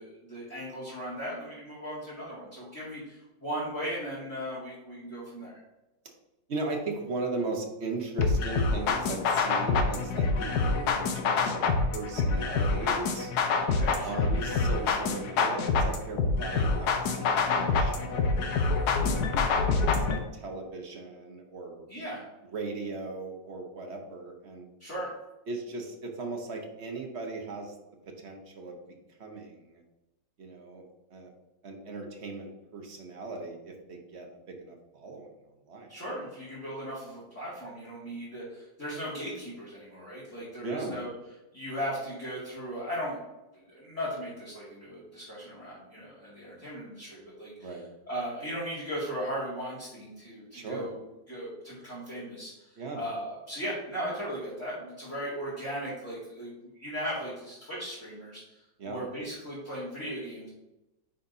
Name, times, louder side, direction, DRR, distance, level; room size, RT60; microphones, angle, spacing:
voice 1, 0.0-5.5 13.6-14.2 21.9-22.2 24.8-25.1 35.9-41.1 41.5-43.2 43.7-47.7 48.1-51.0 51.3-52.6 52.9-58.4 58.9-60.5, equal, 10° left, -10 dB, 2.0 m, -37 dB
voice 2, 6.5-11.6 11.9-13.3 14.0-18.4 19.0-21.9 22.4-24.7 25.5-27.7 28.2-28.8 29.2-29.8 30.4-30.8 31.1-31.3 31.6-35.3 35.7-35.9 40.6-41.0 47.6-47.8 50.5-50.9 52.8-53.0 58.8-59.1, right 3 dB, 45° right, 2 dB, 1.0 m, -38 dB
sound 1, 8.2-20.2, left 4 dB, 65° left, 1.2 m, -26 dB
9.4 x 4.2 x 2.7 m, 0.97 s
omnidirectional pair, 2.0 m